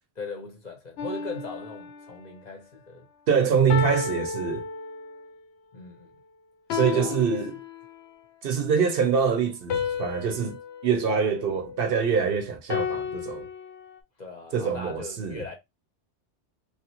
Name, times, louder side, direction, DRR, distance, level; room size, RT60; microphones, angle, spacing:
voice 1, 0.2-3.1 5.7-6.1 6.9-7.4 14.2-15.5, left 3 dB, 45° left, 0.8 m, -39 dB
sound 1, 1.0-2.3 3.7-5.3 6.7-8.2 9.7-12.1 12.7-14.0, left 6 dB, 80° left, 0.9 m, -33 dB
voice 2, 3.3-4.6 6.7-7.5 8.4-13.4 14.5-15.4, right 6 dB, 65° right, 0.7 m, -25 dB
3.0 x 2.5 x 2.8 m
omnidirectional pair, 1.1 m